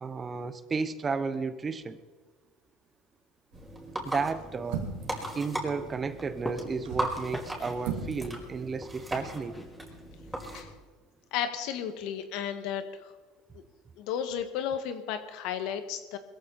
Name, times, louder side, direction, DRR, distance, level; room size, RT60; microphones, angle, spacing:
voice 1, 0.0-2.0 4.0-4.8 5.3-9.7, right 4 dB, 25° right, 13 dB, 1.0 m, -33 dB
sound 1, 3.5-10.6, right 1 dB, 5° right, 4.8 m, -38 dB
sound 2, 3.5-3.8 4.6-5.2 6.7-7.2 7.8-8.2 8.5-8.6, right 6 dB, 80° right, 3.1 m, -35 dB
sound 3, 4.9-10.9, left 1 dB, 10° left, 3.3 m, -45 dB
voice 2, 11.3-13.1 13.5-13.6 14.0-16.2, left 9 dB, 70° left, 8 dB, 1.9 m, -33 dB
21.5 x 15.0 x 4.3 m, 1.3 s
supercardioid pair, 105°, 0 cm